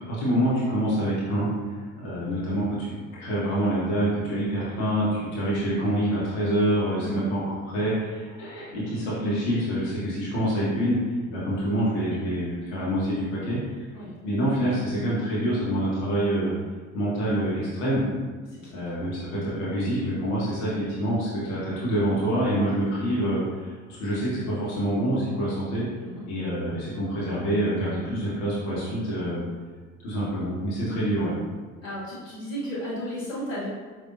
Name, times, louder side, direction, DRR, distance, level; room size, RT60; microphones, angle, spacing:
voice 1, 0.1-11.0 11.3-13.8 14.2-16.5 16.9-18.0 18.7-25.9 26.3-29.4 30.0-31.4, right 1 dB, 60° left, -8 dB, 1.3 m, -26 dB
voice 2, 18.5-18.9 26.0-26.3 30.1-30.3 31.8-33.7, equal, 80° left, -8 dB, 1.1 m, -34 dB
5.0 x 2.7 x 2.5 m, 1.5 s
figure-of-eight pair, 55°, 38 cm